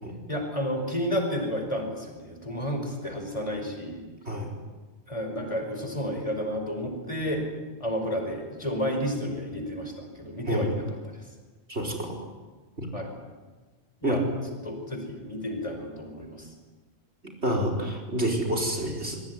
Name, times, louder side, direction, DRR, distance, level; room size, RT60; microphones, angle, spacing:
voice 1, 0.3-4.0 5.1-7.4 7.8-11.2 12.9-13.1 14.0-14.2 14.6-16.5, equal, 30° left, 4 dB, 5.3 m, -31 dB
voice 2, 11.7-12.3 12.8-12.9 14.0-14.2 17.4-19.2, equal, 75° right, 0 dB, 5.2 m, -28 dB
25.0 x 22.5 x 9.9 m, 1.3 s
omnidirectional pair, 1.1 m